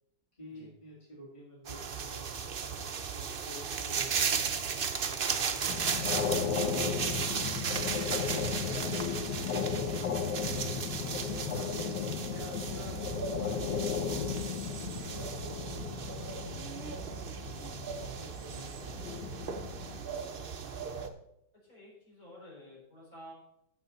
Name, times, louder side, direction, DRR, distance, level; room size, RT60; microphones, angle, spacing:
voice 1, 0.4-2.3 2.7-4.4 5.0-6.3 6.7-11.8 12.3-16.7 17.7-19.2, equal, 15° left, -5 dB, 2.4 m, -50 dB
sound 1, 1.7-21.1, right 6 dB, 85° right, 0.4 m, -36 dB
sound 2, 5.7-20.0, left 7 dB, 70° left, 1.4 m, -35 dB
voice 2, 21.6-23.3, equal, 50° left, -4 dB, 4.6 m, -51 dB
14.0 x 6.4 x 4.0 m, 0.80 s
omnidirectional pair, 2.0 m